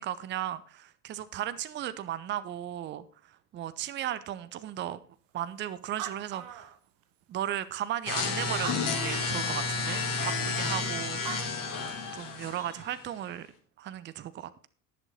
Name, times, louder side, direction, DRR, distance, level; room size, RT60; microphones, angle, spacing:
voice 1, 0.0-5.0 5.3-6.7 7.3-11.2 12.1-13.5 13.8-14.7, right 11 dB, 25° right, 0.7 m, -36 dB
Animal, 5.6-5.7 5.8-7.2 7.9-8.0 8.5-9.5 11.0-11.1 11.3-12.2, right 10 dB, 45° right, 1.5 m, -41 dB
sound 1, 8.1-13.1, left 4 dB, 40° left, 3.0 m, -31 dB
11.0 x 11.0 x 3.9 m
figure-of-eight pair, 75°, 48 cm